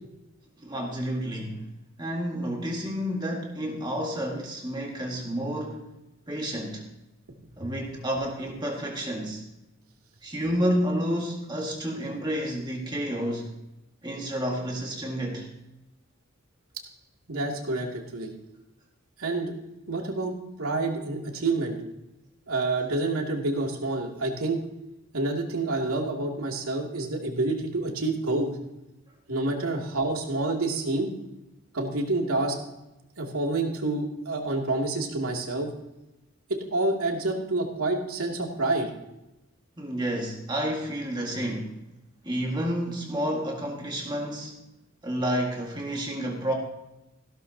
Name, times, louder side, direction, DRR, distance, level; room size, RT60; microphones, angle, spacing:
voice 1, 0.6-1.6 2.0-5.9 6.3-6.9 7.6-9.4 10.2-13.5 14.0-15.5 39.8-41.8 42.2-44.6 45.0-46.5, equal, 20° right, 0 dB, 1.8 m, -30 dB
voice 2, 17.3-18.3 19.2-19.5 19.9-21.8 22.5-24.6 25.1-28.5 29.3-31.1 31.7-32.7 33.2-35.7 36.5-38.9, right 2 dB, 85° right, 1 dB, 2.6 m, -28 dB
16.0 x 13.0 x 2.8 m, 0.94 s
head